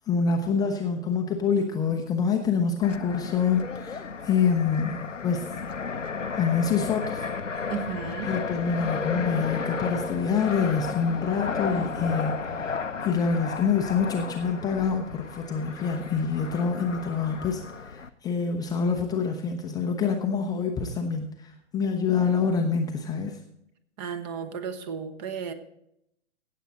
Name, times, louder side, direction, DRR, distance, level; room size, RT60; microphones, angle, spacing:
voice 1, 0.1-5.5 6.4-7.2 8.3-23.4, left 5 dB, 10° left, 3 dB, 0.5 m, -26 dB
Fixed-wing aircraft airplane, 2.8-18.1, left 5 dB, 90° left, 0.7 m, -34 dB
voice 2, 7.7-8.3 24.0-25.5, right 7 dB, 35° right, 11 dB, 1.1 m, -34 dB
17.0 x 7.5 x 4.0 m, 0.76 s
figure-of-eight pair, 110°, 36 cm